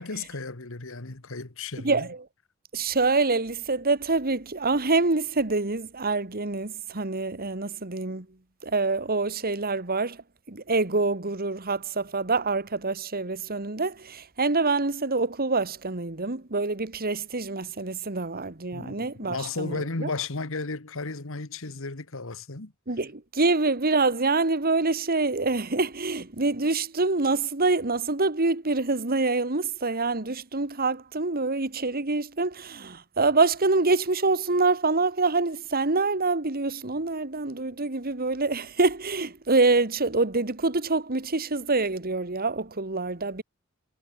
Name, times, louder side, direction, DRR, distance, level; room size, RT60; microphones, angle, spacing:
voice 1, 0.0-2.1 18.7-22.7, left 3 dB, 70° left, 1.9 m, -34 dB
voice 2, 1.8-2.2 2.7-8.3 8.6-20.1 22.9-43.4, right 3 dB, 45° right, 2.1 m, -26 dB
head